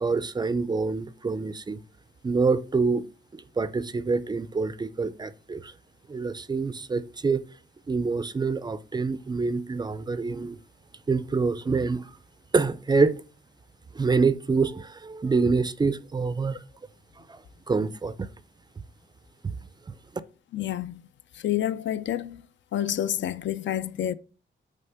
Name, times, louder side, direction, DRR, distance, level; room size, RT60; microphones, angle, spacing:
voice 1, 0.0-1.8 2.2-3.0 3.3-5.7 6.1-7.4 7.9-10.6 11.1-12.1 12.5-13.2 13.9-16.6 17.3-17.4 17.7-18.3 19.4-19.6, right 4 dB, 20° right, 0.3 m, -26 dB
voice 2, 20.5-21.1 21.4-22.4 22.7-24.1, left 11 dB, 70° left, 0.5 m, -28 dB
9.2 x 3.3 x 5.5 m
wide cardioid pair, 175°, 20 cm